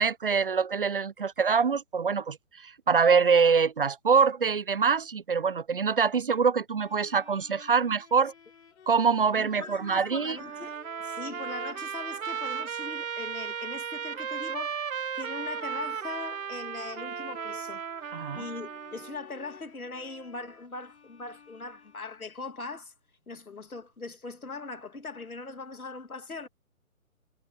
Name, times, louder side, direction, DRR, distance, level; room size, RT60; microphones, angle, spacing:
voice 1, 0.0-8.3 8.9-10.4 18.1-18.4, right 5 dB, 40° right, 0.5 m, -24 dB
sound 1, 6.8-22.4, left 6 dB, 50° left, 6.9 m, -54 dB
voice 2, 9.4-14.8 15.1-17.8 18.3-22.9 23.3-26.5, left 3 dB, 75° left, 2.6 m, -40 dB
Trumpet, 10.4-19.2, right 7 dB, 65° right, 0.9 m, -35 dB
figure-of-eight pair, 140°, 43 cm